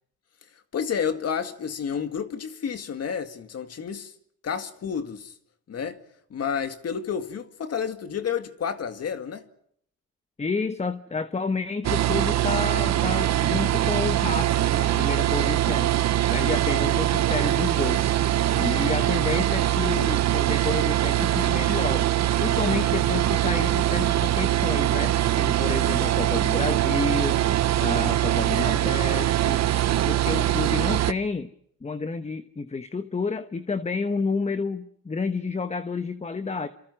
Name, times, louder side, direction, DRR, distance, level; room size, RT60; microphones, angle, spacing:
voice 1, 0.7-4.1 4.4-5.3 5.7-6.0 6.3-9.4, left 7 dB, 55° left, 2.1 m, -30 dB
voice 2, 10.4-15.9 16.3-18.1 18.5-22.1 22.4-27.4 27.8-29.6 30.0-31.5 31.8-36.7, left 4 dB, 20° left, 1.2 m, -30 dB
sound 1, 11.8-31.1, right 13 dB, 60° right, 0.9 m, -23 dB
27.0 x 26.5 x 6.2 m
cardioid pair, 90°, 30 cm